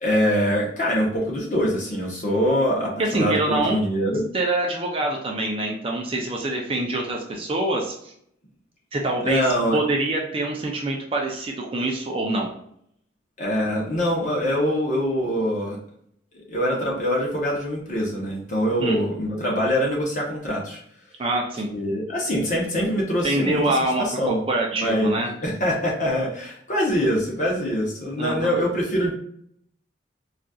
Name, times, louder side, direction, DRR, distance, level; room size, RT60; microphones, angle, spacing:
voice 1, 0.0-4.2 9.2-9.8 13.4-15.8 16.5-20.8 21.7-24.4 24.8-29.1, equal, 40° left, -2 dB, 0.8 m, -24 dB
voice 2, 3.0-3.8 4.3-8.1 8.9-9.5 9.7-12.5 18.8-19.0 21.2-21.7 23.2-25.3 28.2-28.6, right 2 dB, 30° right, 0 dB, 0.4 m, -25 dB
3.9 x 2.4 x 2.3 m, 0.69 s
head